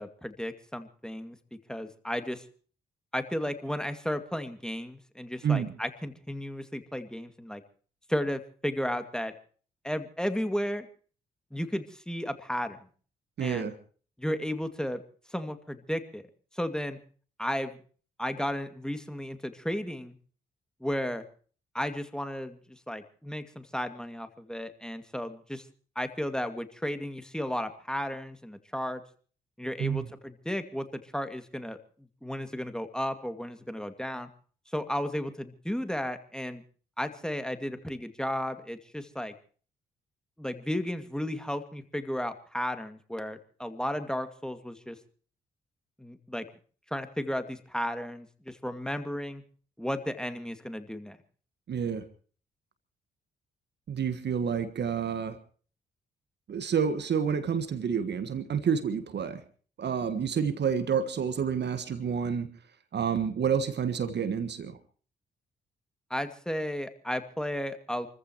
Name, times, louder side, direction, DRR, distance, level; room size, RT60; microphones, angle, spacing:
voice 1, 0.0-2.4 3.1-7.6 8.1-9.3 9.8-10.9 11.5-12.8 13.4-13.7 14.2-15.0 15.3-16.2 16.5-17.0 17.4-17.8 18.2-20.2 20.8-21.2 21.7-25.6 26.0-29.0 29.6-31.8 32.2-34.3 34.7-36.6 37.0-39.3 40.4-45.0 46.0-46.5 46.9-49.4 49.8-51.2 66.1-68.1, equal, 5° left, 8 dB, 2.3 m, -34 dB
voice 2, 13.4-13.7 29.8-30.0 51.7-52.0 53.9-55.4 56.5-59.4 59.8-62.5 62.9-64.8, right 7 dB, 55° right, 11 dB, 1.5 m, -29 dB
29.0 x 14.5 x 3.0 m, 0.42 s
hypercardioid pair, 40°, 21 cm